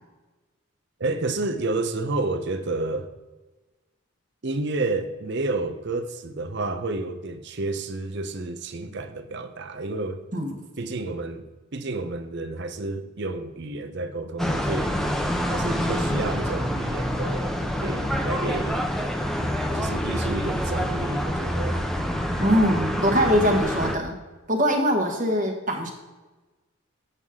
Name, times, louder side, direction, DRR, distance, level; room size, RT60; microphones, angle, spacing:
voice 1, 1.0-3.1 4.4-10.2 10.8-15.0 15.5-18.9 19.7-21.8, right 2 dB, 50° right, 9 dB, 0.7 m, -30 dB
sound 1, 14.4-24.0, equal, ahead, 0.6 m, -26 dB
voice 2, 22.4-24.2 24.5-25.9, equal, 35° right, 2 dB, 1.3 m, -22 dB
8.1 x 7.3 x 3.6 m, 1.2 s
head